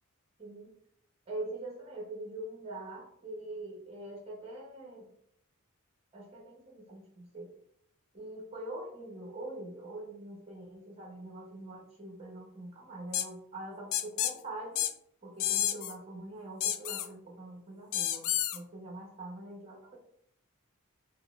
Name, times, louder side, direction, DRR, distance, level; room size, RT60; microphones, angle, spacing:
voice 1, 0.4-0.7 1.3-5.1 6.1-7.5 8.1-14.8 15.2-20.0, right 2 dB, 25° right, -1 dB, 0.8 m, -43 dB
sound 1, 13.1-13.3 13.9-14.3 14.8-14.9 15.4-15.9 16.6-17.1 17.9-18.6, left 11 dB, 60° left, 0.3 m, -30 dB
4.0 x 2.5 x 2.4 m, 0.72 s
head